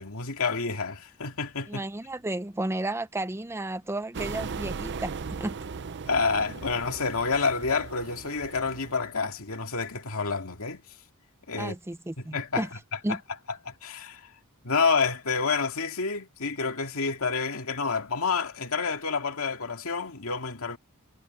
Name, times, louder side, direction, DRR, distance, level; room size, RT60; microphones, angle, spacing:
voice 1, 0.0-1.8 6.0-10.8 11.5-11.7 12.3-12.7 13.1-13.2 13.6-14.3 14.6-20.8, left 4 dB, 70° left, 2.5 m, -28 dB
voice 2, 1.7-5.5 11.6-12.7 13.0-13.2, right 1 dB, 10° right, 0.6 m, -32 dB
sound 1, 4.1-9.1, right 5 dB, 55° right, 0.6 m, -38 dB
head